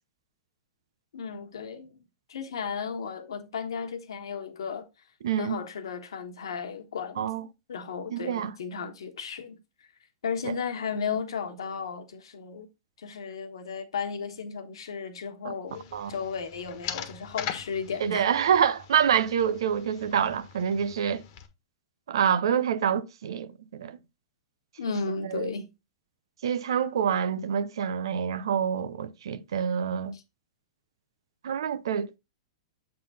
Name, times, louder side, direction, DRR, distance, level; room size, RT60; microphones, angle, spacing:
voice 1, 1.1-2.0 2.3-4.9 5.4-9.6 10.2-12.7 13.0-18.5 24.8-25.7 30.1-30.2, left 6 dB, 80° left, 1.3 m, -34 dB
voice 2, 5.2-5.6 7.2-7.4 8.1-8.5 10.4-10.5 15.4-15.5 15.9-16.1 18.0-21.2 22.1-24.0 25.3-25.5 26.4-30.2 31.4-32.2, right 8 dB, 75° right, 0.6 m, -27 dB
sound 1, 15.7-21.5, left 9 dB, 50° left, 1.3 m, -41 dB
7.6 x 3.8 x 4.1 m
hypercardioid pair, 120°, 3 cm